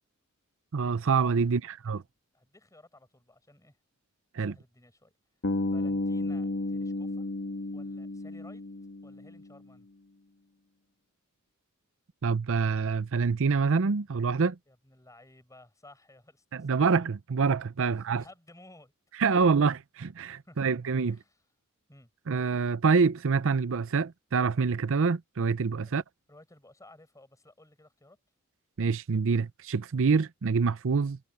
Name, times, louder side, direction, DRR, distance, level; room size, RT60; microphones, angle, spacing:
voice 1, 0.7-2.0 4.3-4.5 12.2-14.6 16.5-18.2 19.2-21.2 22.3-26.0 28.8-31.2, right 5 dB, 65° right, 0.6 m, -26 dB
voice 2, 2.3-3.8 4.4-5.1 5.6-7.3 7.7-8.7 9.0-9.9 14.7-17.0 17.8-18.9 19.2-19.8 20.4-20.7 21.1-21.4 21.9-22.1 25.9-28.2, left 1 dB, 15° left, 5.2 m, -56 dB
Bass guitar, 5.4-9.5, left 2 dB, 60° left, 1.3 m, -32 dB
head